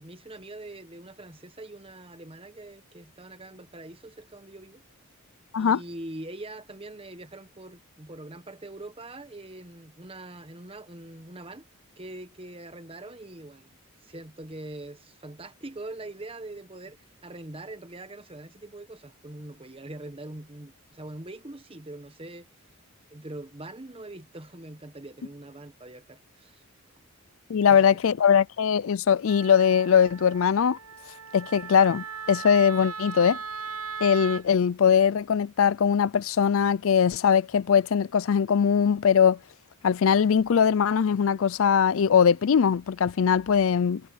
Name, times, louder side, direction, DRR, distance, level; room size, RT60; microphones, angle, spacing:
voice 1, 0.0-4.8 5.6-11.6 12.0-13.7 14.0-22.5 23.1-26.6 27.7-28.0, right 2 dB, 25° right, 1.3 m, -43 dB
voice 2, 27.5-30.8 31.3-33.4 34.0-39.4 39.8-44.0, left 7 dB, 65° left, 0.4 m, -21 dB
Wind instrument woodwind instrument, 29.3-34.4, right 5 dB, 75° right, 0.8 m, -38 dB
head